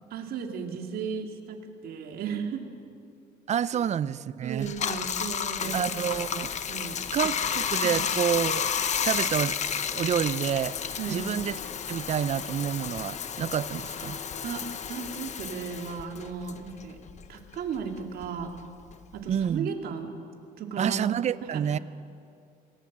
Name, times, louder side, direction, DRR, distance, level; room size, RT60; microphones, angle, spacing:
voice 1, 0.1-2.6 3.7-3.8 4.4-6.1 6.7-7.0 7.8-8.0 11.0-11.2 14.4-17.0 17.3-18.5 19.1-20.1 20.6-21.1 21.5-21.6, right 6 dB, 65° right, 3 dB, 2.6 m, -35 dB
voice 2, 3.5-4.7 5.7-6.5 7.1-8.7 9.0-9.6 9.9-11.6 11.9-14.2 19.3-19.7 20.8-21.8, right 9 dB, 40° right, 17 dB, 0.6 m, -28 dB
Bathtub (filling or washing), 4.6-17.4 17.7-19.6, left 7 dB, 45° left, 1.1 m, -32 dB
27.0 x 17.5 x 7.4 m, 2.4 s
cardioid pair, 110°, 17 cm